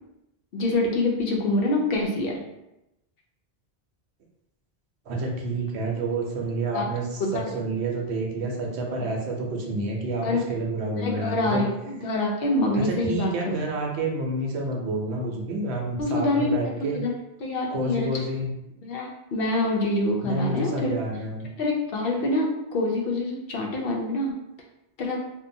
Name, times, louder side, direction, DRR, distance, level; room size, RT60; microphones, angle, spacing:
voice 1, 0.5-2.4 6.7-6.9 7.2-7.4 10.2-10.4 10.9-13.6 16.0-17.1 17.4-18.1 18.8-21.0 21.6-24.3 25.0-25.2, left 2 dB, 70° left, -1 dB, 0.7 m, -26 dB
voice 2, 5.1-11.7 12.8-17.0 17.7-18.5 20.2-21.5, right 2 dB, 80° right, 0 dB, 0.9 m, -29 dB
2.7 x 2.1 x 2.6 m, 0.89 s
omnidirectional pair, 1.1 m